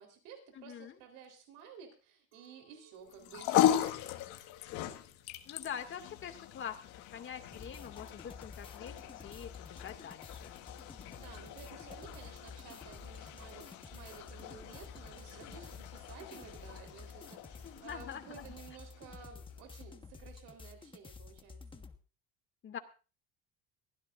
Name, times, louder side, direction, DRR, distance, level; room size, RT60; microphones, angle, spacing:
voice 1, 0.0-4.2 11.0-21.8, right 7 dB, 80° right, 4 dB, 3.9 m, -53 dB
voice 2, 0.5-0.9 5.5-6.8 7.1-10.6 17.6-18.4 22.6-22.8, left 8 dB, 40° left, 7 dB, 2.2 m, -44 dB
Chink clink, 2.3-7.8, right 6 dB, 45° right, 5.4 m, -69 dB
sound 1, 3.1-19.6, left 12 dB, 80° left, 1.8 m, -38 dB
sound 2, 7.5-22.0, left 4 dB, 15° left, 1.4 m, -51 dB
23.0 x 16.0 x 2.5 m, 0.34 s
cardioid pair, 115°, 30 cm